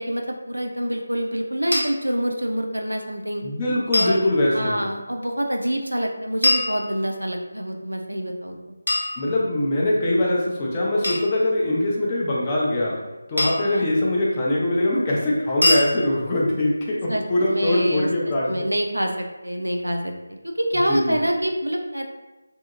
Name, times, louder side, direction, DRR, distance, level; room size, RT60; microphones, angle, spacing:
voice 1, 0.0-3.4 3.9-4.2 4.5-8.7 10.2-10.4 13.6-13.9 17.1-18.1 18.5-20.1 20.4-22.1, equal, 85° right, 2 dB, 0.4 m, -26 dB
sound 1, 1.7-1.8 3.9-4.2 6.4-7.3 8.9-9.8 11.0-11.3 13.4-13.8 15.6-15.9, left 1 dB, 85° left, 1.1 m, -23 dB
voice 2, 3.4-4.8 9.2-13.0 13.3-18.5 20.9-21.2, left 1 dB, 20° left, -4 dB, 0.5 m, -22 dB
2.7 x 2.7 x 2.4 m, 1.1 s
figure-of-eight pair, 160°, 0 cm